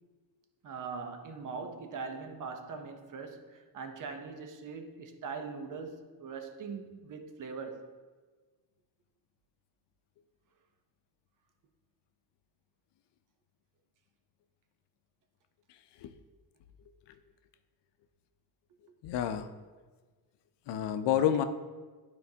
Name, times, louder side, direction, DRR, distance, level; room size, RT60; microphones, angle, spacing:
voice 1, 0.6-7.9, right 5 dB, 50° right, 0.8 m, -41 dB
voice 2, 19.0-19.5 20.7-21.4, left 10 dB, 90° left, 0.6 m, -28 dB
12.0 x 4.6 x 2.8 m
cardioid pair, 145°, 40 cm